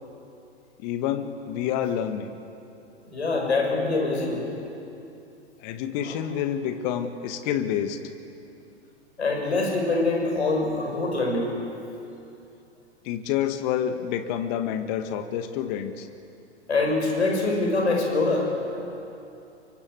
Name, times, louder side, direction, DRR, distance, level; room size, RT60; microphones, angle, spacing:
voice 1, 0.8-2.3 5.6-8.0 13.0-16.1, left 9 dB, 40° left, 8 dB, 1.8 m, -28 dB
voice 2, 3.0-4.4 6.0-6.2 9.2-11.5 16.7-18.9, left 3 dB, 75° left, 1 dB, 6.2 m, -24 dB
26.0 x 24.0 x 7.8 m, 2.8 s
figure-of-eight pair, 100°, 34 cm